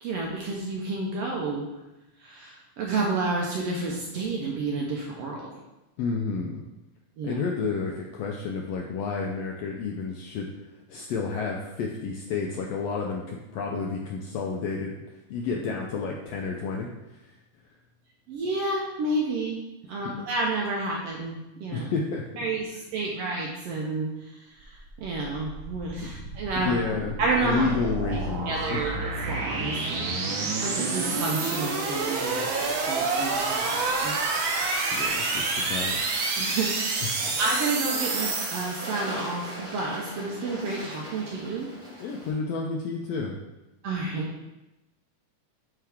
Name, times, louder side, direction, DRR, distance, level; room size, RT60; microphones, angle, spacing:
voice 1, 0.0-1.7 2.2-5.4 7.2-7.4 18.3-19.6 19.9-21.9 22.4-24.1 24.6-24.7 25.0-27.7 28.5-29.8 30.6-34.2 36.4-41.7 43.8-44.5, right 3 dB, 70° right, -1 dB, 1.5 m, -30 dB
voice 2, 6.0-6.7 7.2-10.5 10.9-17.4 21.7-22.2 26.0-26.1 26.5-28.8 34.9-36.0 37.0-37.2 41.9-43.4, left 4 dB, 85° left, 0 dB, 1.5 m, -31 dB
sound 1, 24.7-39.4, right 3 dB, 90° right, 1.0 m, -29 dB
Bird / Water, 35.6-42.3, right 1 dB, 30° right, 2.3 m, -40 dB
8.8 x 3.7 x 3.5 m, 1.0 s
omnidirectional pair, 3.5 m